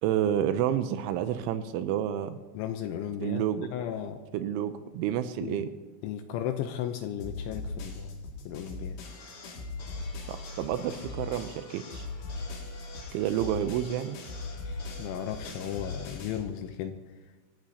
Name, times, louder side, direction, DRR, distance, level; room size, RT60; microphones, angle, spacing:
voice 1, 0.0-2.4 3.2-3.7 4.3-5.7 10.3-12.1 13.1-14.2, right 10 dB, 85° right, 10 dB, 2.8 m, -29 dB
voice 2, 2.5-3.4 3.7-4.2 5.4-5.6 6.0-8.2 8.5-9.0 14.6-16.9, left 10 dB, 80° left, 7 dB, 2.8 m, -35 dB
sound 1, 7.2-11.6 11.9-16.5, left 3 dB, 60° left, 4.3 m, -40 dB
sound 2, 9.0-16.2, left 2 dB, 40° left, 2.1 m, -49 dB
25.5 x 14.0 x 2.8 m, 1.2 s
omnidirectional pair, 6.0 m